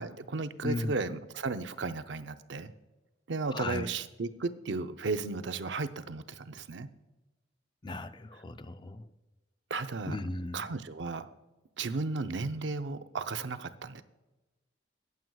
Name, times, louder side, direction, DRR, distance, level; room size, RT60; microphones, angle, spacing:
voice 1, 0.0-2.7 3.3-6.9 9.7-10.2 10.5-11.3 11.8-14.0, right 3 dB, 70° right, 10 dB, 0.6 m, -34 dB
voice 2, 0.6-0.9 3.5-3.9 7.8-9.1 10.1-10.7, left 2 dB, 25° left, 11 dB, 0.4 m, -36 dB
18.5 x 7.7 x 2.3 m, 1.1 s
head